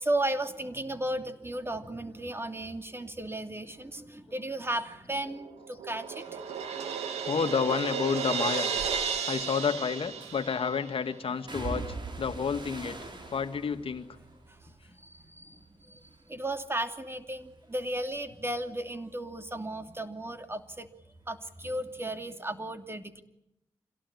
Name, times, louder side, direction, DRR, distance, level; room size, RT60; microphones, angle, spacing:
voice 1, 0.0-6.4 14.5-20.9 21.3-23.2, right 1 dB, 20° right, 7 dB, 2.7 m, -35 dB
Crash cymbal, 5.3-11.0, right 6 dB, 90° right, 2.8 m, -33 dB
voice 2, 7.3-8.7 9.3-13.0 13.3-14.1, left 6 dB, 60° left, 9 dB, 1.9 m, -30 dB
sound 1, 8.7-9.0 10.2-10.7 11.5-15.7 16.0-16.7 17.0-20.3 20.6-21.7 22.0-22.1, right 3 dB, 50° right, 6.6 m, -44 dB
26.5 x 17.5 x 9.8 m, 0.87 s
supercardioid pair, 45°, 11 cm